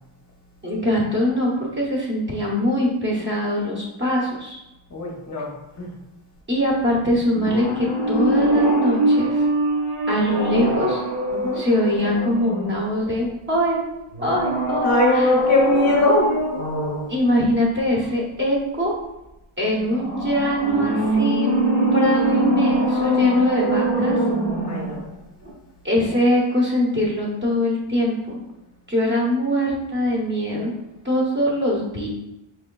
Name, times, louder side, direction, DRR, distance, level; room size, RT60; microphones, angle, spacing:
voice 1, 0.6-4.6 6.5-9.3 10.1-11.0 11.5-13.8 14.2-15.3 17.1-19.0 19.6-24.2 25.8-28.4 28.9-30.7 31.0-32.1, equal, 25° right, -4 dB, 0.8 m, -22 dB
voice 2, 4.9-5.5 5.8-5.9 11.3-11.6 14.8-16.4 19.7-19.9 24.7-25.0, left 2 dB, 35° left, -3 dB, 0.6 m, -20 dB
sound 1, 7.3-13.1 14.1-17.2 19.9-25.1 25.4-25.5, right 1 dB, 65° right, 1.2 m, -22 dB
4.7 x 3.0 x 2.2 m, 0.92 s
wide cardioid pair, 155°, 48 cm